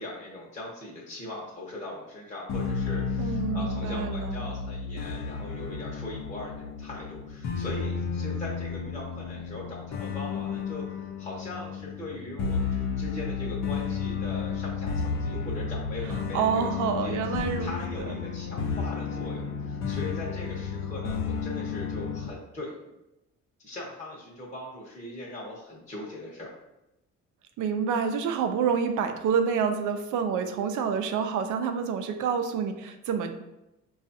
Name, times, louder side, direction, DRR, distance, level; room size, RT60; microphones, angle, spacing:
voice 1, 0.0-22.9 23.6-26.5, left 1 dB, 25° left, -5 dB, 0.9 m, -40 dB
sound 1, 2.5-22.3, left 5 dB, 60° left, 0.6 m, -32 dB
voice 2, 3.2-4.4 16.3-17.7 27.6-33.3, right 6 dB, 80° right, 7 dB, 0.5 m, -28 dB
5.0 x 2.4 x 2.7 m, 0.92 s
cardioid pair, 90°, 30 cm